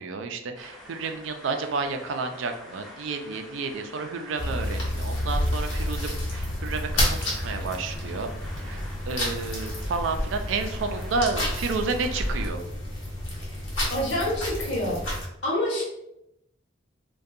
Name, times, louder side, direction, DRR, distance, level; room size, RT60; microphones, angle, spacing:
voice 1, 0.0-8.3 8.6-12.6, right 4 dB, 75° right, 6 dB, 0.3 m, -31 dB
sound 1, 0.5-12.5, equal, ahead, 0.5 m, -40 dB
sound 2, 4.4-15.3, left 1 dB, 90° left, 0.8 m, -30 dB
voice 2, 13.9-15.0 15.4-15.8, left 1 dB, 65° left, -4 dB, 0.9 m, -27 dB
2.6 x 2.2 x 2.4 m, 0.83 s
head